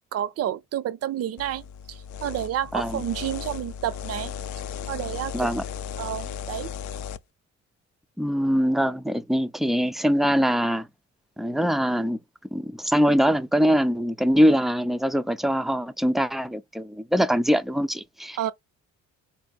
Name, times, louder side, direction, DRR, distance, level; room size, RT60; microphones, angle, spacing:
voice 1, 0.1-1.6 1.9-4.3 4.9-5.5 6.0-6.7 18.4-18.5, right 11 dB, 55° right, 0.6 m, -30 dB
sound 1, 1.4-7.2, left 8 dB, 70° left, 0.5 m, -36 dB
voice 2, 8.2-10.9 11.4-12.2 12.5-18.4, equal, ahead, 0.4 m, -23 dB
4.0 x 2.6 x 3.5 m
cardioid pair, 90°, 30 cm